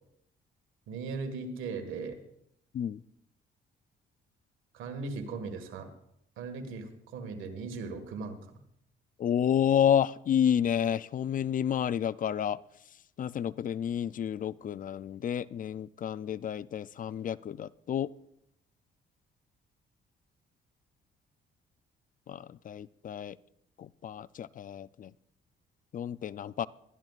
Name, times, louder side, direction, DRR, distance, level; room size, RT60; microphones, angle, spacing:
voice 1, 0.9-2.2 4.7-5.9 6.4-8.4, right 4 dB, 90° right, 6 dB, 1.7 m, -38 dB
voice 2, 9.2-12.6 13.2-18.1 22.3-23.4 23.8-25.1 25.9-26.7, left 9 dB, 45° left, 18 dB, 0.4 m, -30 dB
22.0 x 12.5 x 2.4 m, 0.75 s
cardioid pair, 90°, 20 cm